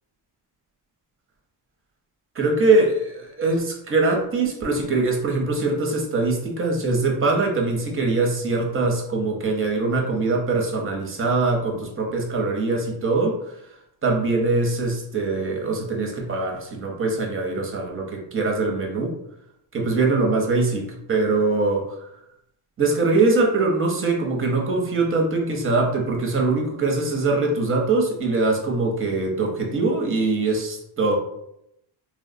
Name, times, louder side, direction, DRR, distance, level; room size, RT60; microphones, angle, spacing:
voice 1, 2.3-13.6 14.0-19.2 19.7-22.1 22.8-31.2, right 3 dB, 25° right, 0 dB, 0.7 m, -22 dB
3.1 x 2.0 x 2.5 m, 0.79 s
cardioid pair, 85°, 49 cm